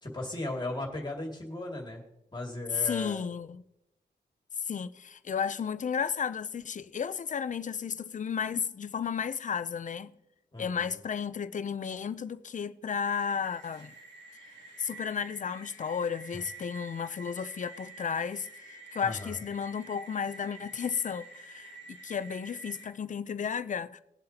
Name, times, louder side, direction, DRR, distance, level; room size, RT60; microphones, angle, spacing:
voice 1, 0.0-2.0 2.3-3.2 10.5-10.9 19.0-19.4, left 1 dB, 25° left, 2.3 m, -37 dB
voice 2, 2.7-3.6 4.6-10.1 10.6-13.9 14.8-18.5 18.9-24.0, left 7 dB, 45° left, 0.5 m, -33 dB
sound 1, 13.0-22.9, right 3 dB, 90° right, 2.6 m, -49 dB
20.5 x 7.7 x 2.9 m
wide cardioid pair, 115°, 18 cm